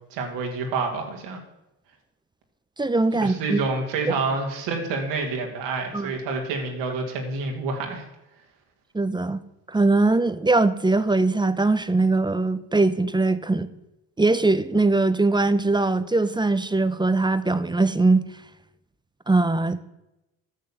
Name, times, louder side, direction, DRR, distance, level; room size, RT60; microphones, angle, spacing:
voice 1, 0.1-1.4 3.2-8.0, right 3 dB, 80° right, 2 dB, 2.2 m, -28 dB
voice 2, 2.8-3.6 5.9-6.1 8.9-9.4 9.7-13.7 14.2-18.3 19.3-19.8, right 3 dB, 10° right, 13 dB, 0.6 m, -21 dB
9.5 x 6.5 x 7.0 m, 0.94 s
supercardioid pair, 65°, 42 cm